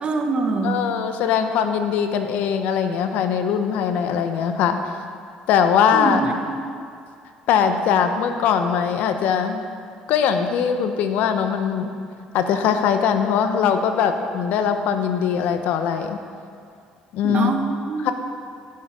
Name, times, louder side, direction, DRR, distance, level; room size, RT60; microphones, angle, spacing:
voice 1, 0.0-0.8 5.9-6.3 17.2-18.1, right 3 dB, 40° right, 3 dB, 1.4 m, -24 dB
voice 2, 0.6-4.8 5.5-6.2 7.5-9.6 10.1-11.9 12.3-16.2 17.1-17.5 18.0-18.1, left 7 dB, 75° left, 7 dB, 0.9 m, -21 dB
16.0 x 6.7 x 5.4 m, 2.3 s
supercardioid pair, 85°, 3 cm